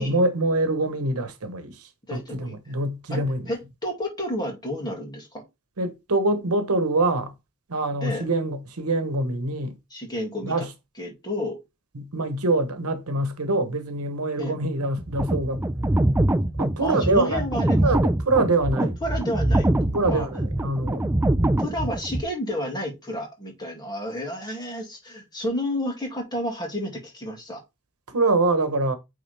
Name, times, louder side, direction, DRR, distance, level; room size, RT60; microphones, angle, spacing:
voice 1, 0.0-3.5 5.8-7.3 7.7-9.7 10.4-10.7 11.9-15.6 16.6-17.4 17.8-18.9 19.8-21.0 28.1-28.9, right 2 dB, 90° right, 1.0 m, -25 dB
voice 2, 2.1-2.6 3.1-5.4 8.0-8.2 9.9-10.6 11.0-11.6 14.4-14.6 16.8-17.9 19.0-19.7 20.1-20.3 21.6-27.6, left 1 dB, 20° left, 2.3 m, -31 dB
sound 1, 15.0-22.2, right 1 dB, 10° right, 0.4 m, -23 dB
8.8 x 3.6 x 3.4 m
head